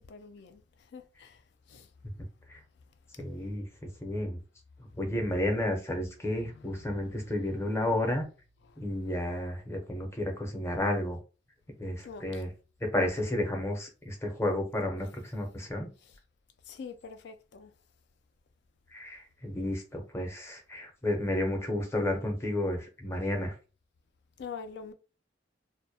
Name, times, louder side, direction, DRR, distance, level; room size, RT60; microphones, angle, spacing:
voice 1, 0.1-1.4 1.7-1.9 3.1-3.2 4.1-4.2 6.4-7.1 8.6-9.1 12.0-12.4 16.0-16.2 16.7-17.7 24.4-24.9, left 5 dB, 65° left, 0.4 m, -46 dB
voice 2, 3.2-4.4 5.0-8.3 8.8-11.2 11.8-12.5 12.8-15.9 18.9-23.5, left 1 dB, 15° left, 0.6 m, -32 dB
2.2 x 2.1 x 2.7 m
head